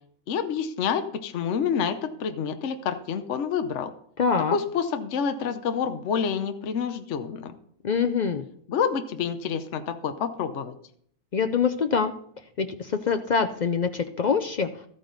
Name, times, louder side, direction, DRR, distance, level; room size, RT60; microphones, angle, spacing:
voice 1, 0.3-3.9 4.5-7.5 8.7-10.7, left 7 dB, 55° left, 8 dB, 1.0 m, -28 dB
voice 2, 4.2-4.6 7.8-8.4 11.3-12.1 12.6-14.7, left 6 dB, 85° left, 8 dB, 0.4 m, -24 dB
13.5 x 9.1 x 4.0 m, 0.65 s
omnidirectional pair, 1.6 m